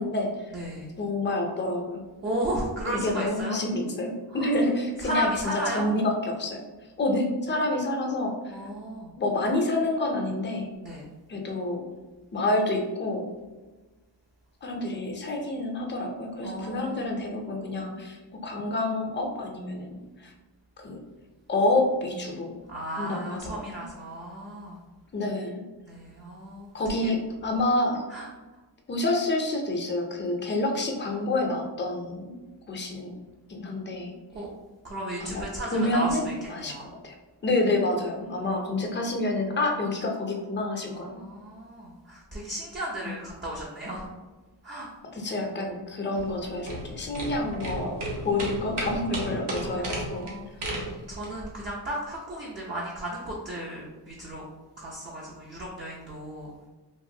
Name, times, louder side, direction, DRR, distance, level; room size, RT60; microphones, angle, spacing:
voice 1, 0.0-0.5 1.0-2.0 2.9-6.6 7.0-8.6 9.2-10.7 11.3-11.8 12.3-13.3 14.6-20.3 20.8-21.0 21.5-22.5 23.0-23.8 25.1-25.6 26.7-28.0 28.9-32.4 32.7-33.1 33.5-34.1 35.2-35.4 35.7-37.1 37.4-41.2 43.0-43.1 45.0-50.3, left 2 dB, 25° left, 2 dB, 0.5 m, -28 dB
voice 2, 0.5-0.9 2.2-3.6 4.3-4.5 5.0-5.9 8.5-9.1 10.8-11.1 14.9-15.1 16.4-17.1 22.7-24.8 25.8-26.7 27.0-27.1 28.1-28.3 34.3-34.5 34.8-36.9 40.9-44.1 44.6-44.9 49.5-54.4 54.8-56.5, right 1 dB, 25° right, -4 dB, 0.5 m, -34 dB
sound 1, 46.1-51.5, right 1 dB, 70° right, 0.9 m, -34 dB
3.0 x 2.4 x 2.6 m, 1.2 s
wide cardioid pair, 115°, 43 cm